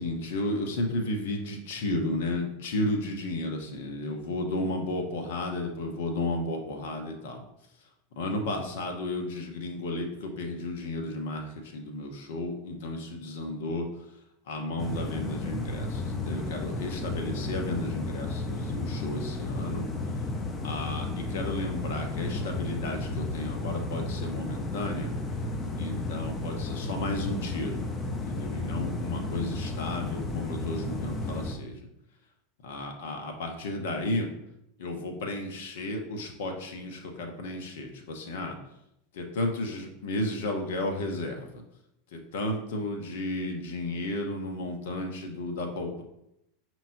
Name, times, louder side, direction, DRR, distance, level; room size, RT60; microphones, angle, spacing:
voice 1, 0.0-7.4 8.2-13.9 14.5-19.9 20.6-25.1 25.8-31.9 32.6-34.3 34.8-38.6 39.1-41.6 42.1-46.0, left 1 dB, 70° left, 3 dB, 0.8 m, -33 dB
sound 1, 14.8-31.5, left 2 dB, 25° left, 0.6 m, -33 dB
5.4 x 3.0 x 2.6 m, 0.81 s
hypercardioid pair, 90°, 0 cm